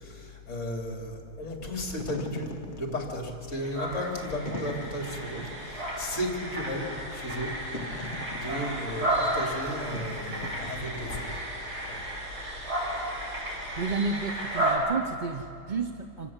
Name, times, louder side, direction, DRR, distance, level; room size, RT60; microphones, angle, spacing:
voice 1, 0.0-7.5 8.4-11.4 11.9-12.0, left 1 dB, 50° left, 1 dB, 3.1 m, -34 dB
Wind / Fire, 1.8-11.3, left 1 dB, 30° left, 1.5 m, -41 dB
sound 1, 3.5-14.8, right 1 dB, 85° right, 6.9 m, -33 dB
voice 2, 13.8-16.3, right 4 dB, 40° right, 6 dB, 0.7 m, -31 dB
25.5 x 18.0 x 7.5 m, 2.5 s
omnidirectional pair, 1.7 m